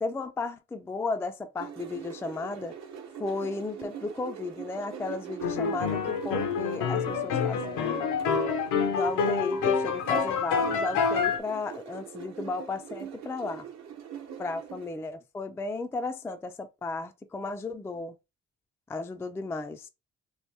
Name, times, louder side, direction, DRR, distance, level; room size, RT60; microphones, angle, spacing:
voice 1, 0.0-2.8 3.2-8.0 8.9-13.7 14.4-18.1 18.9-19.9, left 3 dB, 10° left, 0.3 m, -34 dB
sound 1, 1.6-14.9, right 8 dB, 60° right, 0.8 m, -43 dB
sound 2, 5.4-11.4, left 5 dB, 90° left, 0.8 m, -27 dB
3.0 x 2.6 x 3.3 m
cardioid pair, 90°, 30 cm